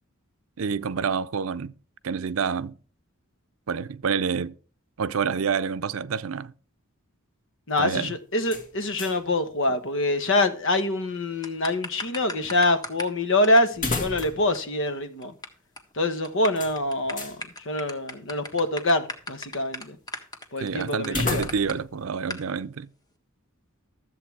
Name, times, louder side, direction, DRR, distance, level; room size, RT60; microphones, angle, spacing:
voice 1, 0.6-1.7 2.0-2.8 3.7-4.5 5.0-6.5 7.8-8.2 20.6-22.9, right 6 dB, 70° right, 0.5 m, -28 dB
voice 2, 7.7-15.3 16.0-17.4 17.6-20.0 20.5-21.5, left 1 dB, 65° left, 1.3 m, -25 dB
sound 1, 8.4-9.3 9.6-9.7 13.7-14.6 14.9-15.0 16.6-17.4 21.0-21.9, left 3 dB, 40° left, 1.8 m, -32 dB
sound 2, 11.4-13.2 13.4-13.6 13.9-14.0 14.2-14.3 14.5-14.6 14.9-15.5 15.8-15.9 16.2-21.7 22.3-22.4, left 1 dB, 20° left, 1.5 m, -36 dB
13.0 x 7.8 x 4.7 m
head